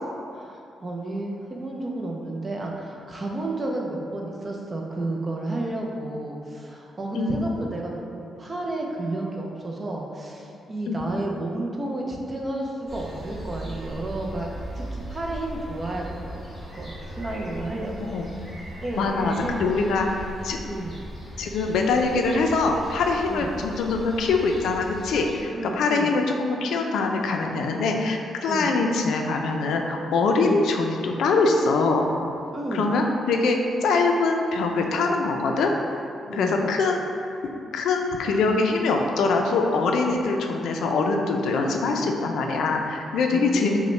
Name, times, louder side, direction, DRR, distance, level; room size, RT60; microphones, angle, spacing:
voice 1, 0.3-14.5 14.7-16.4 16.7-18.1 18.8-19.6 20.7-21.0 23.3-23.5 25.5-26.1 28.5-28.7 30.4-30.5 32.5-33.0 36.3-36.6 43.3-43.8, right 2 dB, 25° right, -1 dB, 0.4 m, -31 dB
sound 1, 12.9-25.4, right 1 dB, 10° left, 1.0 m, -38 dB
voice 2, 19.0-20.1 20.4-20.6 21.4-32.1 32.7-35.7 36.3-37.1 37.7-43.8, left 3 dB, 80° left, 2 dB, 0.4 m, -23 dB
5.2 x 2.1 x 3.2 m, 2.6 s
wide cardioid pair, 170°, 0 cm